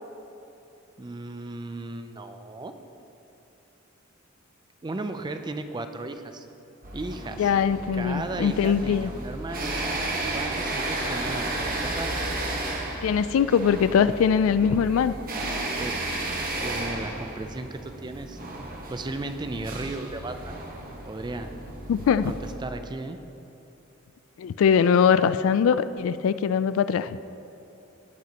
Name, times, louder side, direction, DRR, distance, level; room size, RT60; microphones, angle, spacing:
voice 1, 1.0-2.7 4.8-6.5 6.9-7.5 7.9-9.7 10.3-12.1 15.7-18.4 18.9-20.6 21.1-21.5 22.2-23.2, right 2 dB, 20° right, 8 dB, 0.4 m, -35 dB
sound 1, 6.8-22.5, right 2 dB, 45° right, 1.2 m, -33 dB
voice 2, 7.4-9.1 13.0-15.2 21.9-22.3 24.4-27.1, left 7 dB, 70° left, 15 dB, 0.3 m, -22 dB
18.0 x 6.0 x 2.9 m, 2.9 s
head